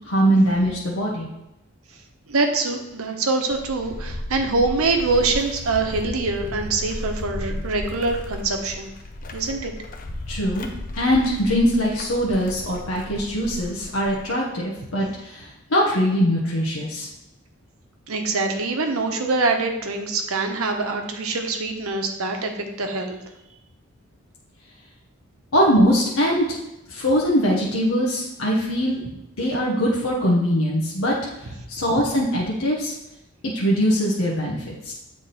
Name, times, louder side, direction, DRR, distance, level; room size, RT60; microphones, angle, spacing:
voice 1, 0.1-1.3 10.3-10.7 11.0-15.4 15.7-17.1 25.5-26.4 26.9-29.0 29.4-31.1 31.7-32.9 33.5-34.9, equal, 80° left, -4 dB, 1.0 m, -21 dB
voice 2, 2.3-8.9 9.3-9.7 18.1-23.2, right 3 dB, 85° right, 4 dB, 0.9 m, -24 dB
sound 1, 3.5-14.3, left 1 dB, 40° left, 0.5 m, -34 dB
7.7 x 3.6 x 4.1 m, 0.92 s
head